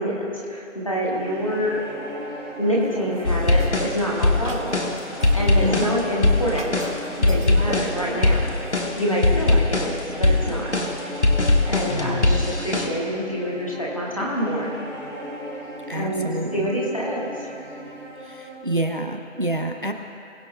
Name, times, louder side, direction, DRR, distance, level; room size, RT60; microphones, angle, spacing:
voice 1, 0.0-1.8 2.6-4.9 5.3-6.8 7.1-8.5 9.0-10.7 11.7-14.8 15.9-17.3, equal, 25° left, -4 dB, 1.4 m, -26 dB
sound 1, 0.9-18.6, right 1 dB, 15° right, 2.1 m, -38 dB
sound 2, 2.7-8.8, right 2 dB, 70° right, 2.1 m, -38 dB
sound 3, 3.2-12.9, left 2 dB, 60° left, 1.3 m, -21 dB
voice 2, 5.6-6.0 15.9-16.7 18.2-19.9, right 1 dB, 40° right, 5 dB, 0.6 m, -28 dB
21.5 x 7.6 x 2.2 m, 2.7 s
figure-of-eight pair, 175°, 39 cm